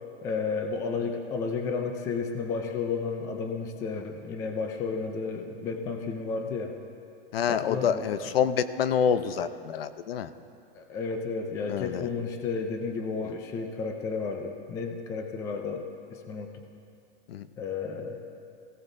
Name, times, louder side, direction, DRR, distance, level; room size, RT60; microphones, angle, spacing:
voice 1, 0.2-6.8 7.5-8.3 10.7-16.5 17.6-18.2, left 4 dB, 10° left, 4 dB, 0.4 m, -32 dB
voice 2, 7.3-10.3 11.7-12.1 17.3-17.5, left 8 dB, 70° left, 12 dB, 0.7 m, -27 dB
21.0 x 16.5 x 2.7 m, 2.5 s
hypercardioid pair, 155°, 31 cm